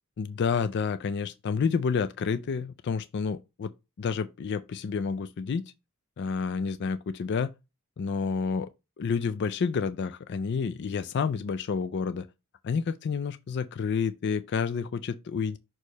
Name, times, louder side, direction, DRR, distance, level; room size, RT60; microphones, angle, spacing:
voice 1, 0.2-3.7 4.0-5.6 6.2-7.5 8.0-8.7 9.0-12.3 12.6-15.6, left 5 dB, 50° left, 0.3 m, -29 dB
6.4 x 3.1 x 5.2 m
head